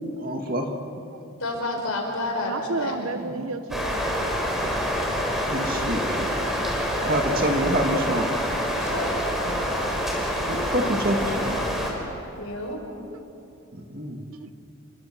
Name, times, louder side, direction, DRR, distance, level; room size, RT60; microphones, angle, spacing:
voice 1, 0.2-0.7 3.3-3.5 3.9-4.0 5.5-6.4 7.0-8.3 9.5-9.7 10.5-11.8 13.0-13.1 13.7-14.2, right 1 dB, 40° right, 3 dB, 2.2 m, -27 dB
voice 2, 1.4-3.0 8.8-9.3 12.4-12.8, left 2 dB, 70° left, 2 dB, 5.1 m, -30 dB
voice 3, 2.5-4.3 14.3-14.5, right 3 dB, 70° right, 11 dB, 1.0 m, -32 dB
sound 1, 3.7-11.9, equal, ahead, 3.9 m, -26 dB
29.0 x 23.0 x 6.2 m, 2.8 s
head